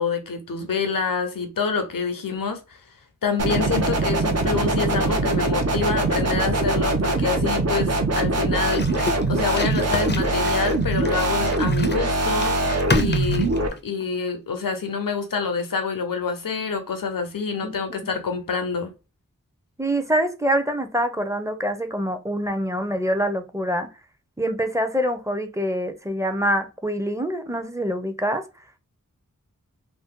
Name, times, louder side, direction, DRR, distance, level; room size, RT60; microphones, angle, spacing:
voice 1, 0.0-2.8 3.2-8.8 9.3-13.5 13.8-18.9, left 5 dB, 80° left, 0.7 m, -27 dB
sound 1, 3.4-13.7, right 2 dB, 50° right, 0.6 m, -22 dB
sound 2, 8.6-14.1, left 3 dB, 30° left, 0.5 m, -30 dB
voice 2, 19.8-23.9 24.4-28.4, equal, 10° right, 0.6 m, -25 dB
2.7 x 2.0 x 3.6 m
wide cardioid pair, 45°, 33 cm